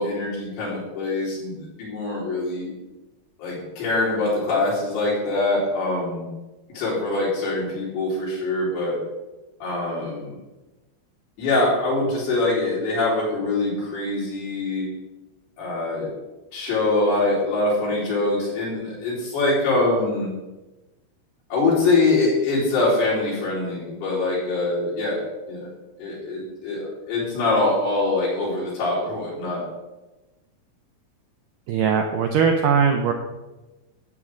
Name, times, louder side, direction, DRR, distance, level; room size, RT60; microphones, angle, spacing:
voice 1, 0.0-2.7 3.4-6.3 6.7-9.0 9.6-10.4 11.4-14.9 15.6-16.1 16.5-20.3 21.5-25.2 25.5-25.7 26.0-26.8 27.1-29.6, left 2 dB, 80° left, -7 dB, 6.0 m, -23 dB
voice 2, 31.7-33.1, right 6 dB, 80° right, 3 dB, 1.9 m, -20 dB
11.5 x 8.7 x 3.8 m, 1.1 s
omnidirectional pair, 4.6 m